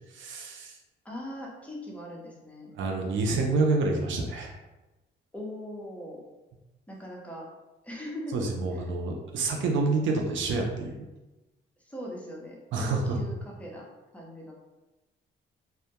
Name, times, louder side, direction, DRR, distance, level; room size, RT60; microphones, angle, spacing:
voice 1, 0.1-0.8 2.7-4.6 8.3-11.0 12.7-13.2, right 3 dB, 75° right, 1 dB, 0.4 m, -28 dB
voice 2, 1.0-2.7 5.3-6.2 6.9-7.5 7.8-8.5 11.8-13.9 14.1-14.5, left 1 dB, 5° left, -3 dB, 0.7 m, -40 dB
2.2 x 2.1 x 2.8 m, 1.1 s
cardioid pair, 90°, 20 cm